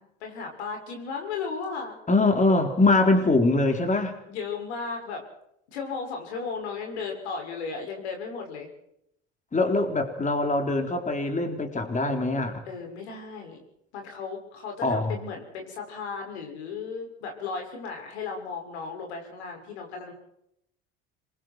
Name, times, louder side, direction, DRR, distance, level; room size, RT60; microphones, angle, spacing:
voice 1, 0.0-2.0 3.1-3.6 4.3-5.2 5.7-8.7 12.7-13.6 13.9-20.1, left 5 dB, 85° left, 2 dB, 6.5 m, -35 dB
voice 2, 2.1-4.2 9.5-12.6 14.8-15.2, left 2 dB, 25° left, 5 dB, 3.9 m, -23 dB
27.0 x 22.5 x 4.7 m, 0.76 s
hypercardioid pair, 75°, 32 cm